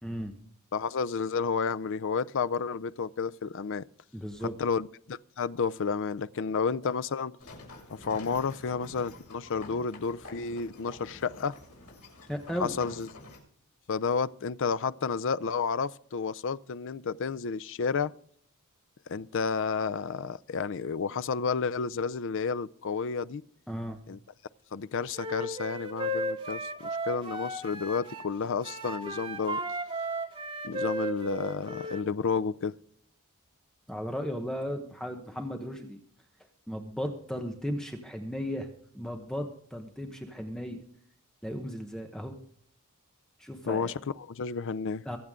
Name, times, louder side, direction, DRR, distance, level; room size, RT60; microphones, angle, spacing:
voice 1, 0.0-0.3 4.1-4.5 12.3-12.7 23.7-24.0 33.9-36.0 36.7-38.7 38.9-40.8 41.4-42.3 43.4-43.9 45.0-45.2, equal, 5° left, 1.1 m, -35 dB
voice 2, 0.7-3.8 4.4-7.3 7.9-11.5 12.6-13.1 13.9-18.1 19.1-23.4 24.1-24.2 24.7-29.6 30.6-32.7 43.7-45.0, left 5 dB, 60° left, 0.5 m, -31 dB
sound 1, 7.4-13.4, left 2 dB, 85° left, 7.0 m, -48 dB
Wind instrument woodwind instrument, 25.1-28.3 28.6-32.0, right 1 dB, 25° right, 2.1 m, -35 dB
24.0 x 8.1 x 3.7 m
head